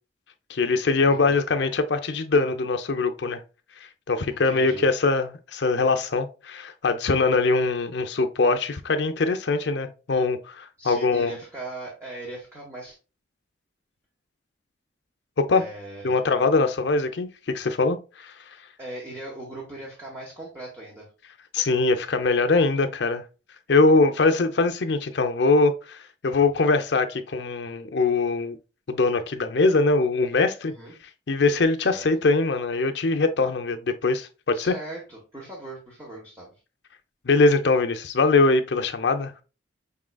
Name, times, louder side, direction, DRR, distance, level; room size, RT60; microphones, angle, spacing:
voice 1, 0.5-3.4 4.1-11.3 15.4-15.7 16.0-18.3 21.5-23.2 23.7-28.6 28.9-30.7 31.3-34.7 37.2-39.3, left 3 dB, 65° left, 0.5 m, -22 dB
voice 2, 1.1-1.4 4.3-4.9 10.8-13.0 15.5-16.3 18.8-21.1 30.7-30.9 31.8-32.0 34.5-36.6, right 2 dB, 15° right, 1.1 m, -39 dB
5.4 x 3.7 x 2.2 m
head